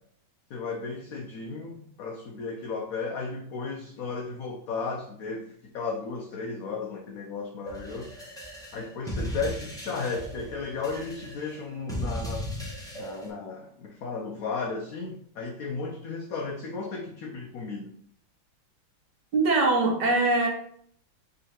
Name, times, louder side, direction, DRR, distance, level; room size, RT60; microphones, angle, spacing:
voice 1, 0.5-8.3 8.7-12.5 13.0-17.9, left 4 dB, 80° left, 1 dB, 0.7 m, -34 dB
sound 1, 7.7-13.3, equal, 5° left, 0.4 m, -37 dB
voice 2, 19.3-20.5, right 3 dB, 65° right, 0 dB, 1.5 m, -22 dB
3.8 x 3.1 x 4.1 m, 0.65 s
omnidirectional pair, 2.1 m